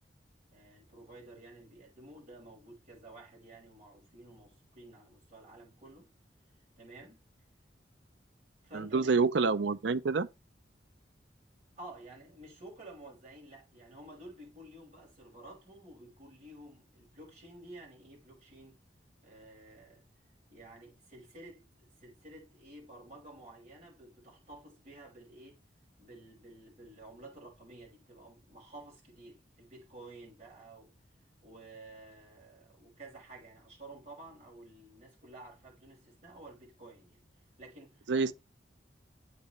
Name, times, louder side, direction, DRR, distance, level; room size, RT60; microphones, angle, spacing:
voice 1, 0.5-6.1 6.8-7.2 8.6-9.1 11.8-18.8 19.2-20.0 20.5-21.6 22.0-25.6 26.0-30.9 31.4-37.2 37.6-38.3, right 2 dB, 40° right, 5.9 m, -52 dB
voice 2, 8.7-10.3 38.1-38.3, right 4 dB, 80° right, 0.6 m, -27 dB
8.3 x 6.8 x 3.2 m
head